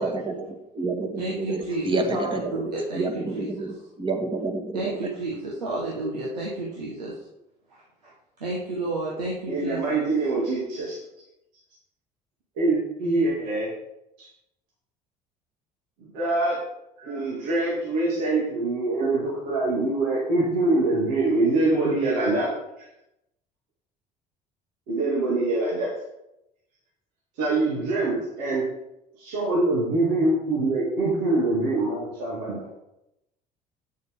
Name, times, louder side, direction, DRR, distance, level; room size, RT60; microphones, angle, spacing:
voice 1, 0.0-0.5 0.7-5.1, right 3 dB, 25° right, 2 dB, 1.9 m, -29 dB
voice 2, 1.2-3.5 4.7-7.2 7.7-8.1 8.4-10.1, right 2 dB, 90° right, -5 dB, 1.5 m, -31 dB
voice 3, 9.5-11.0 12.6-13.7 14.2-14.3 16.0-16.6 17.0-22.5 24.9-25.9 27.4-28.6 29.2-32.8, right 2 dB, 70° right, -6 dB, 2.7 m, -24 dB
9.2 x 6.7 x 3.7 m, 0.87 s
hypercardioid pair, 60°, 20 cm